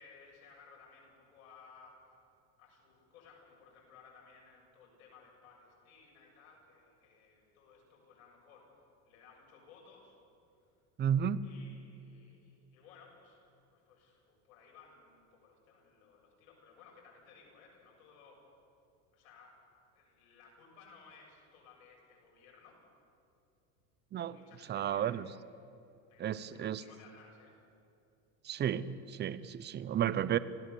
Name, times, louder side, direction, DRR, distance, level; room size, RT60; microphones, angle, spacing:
voice 1, 0.0-2.2 2.6-10.2 10.6-10.7 11.4-18.5 19.1-19.6 19.9-22.8 24.2-25.2 26.1-27.6, left 5 dB, 90° left, -1 dB, 7.7 m, -59 dB
voice 2, 11.0-11.5 24.1-24.4 24.7-25.3 26.2-26.8 28.4-30.4, right 9 dB, 25° right, 16 dB, 0.7 m, -32 dB
26.5 x 17.0 x 7.1 m, 2.6 s
supercardioid pair, 130°, 41 cm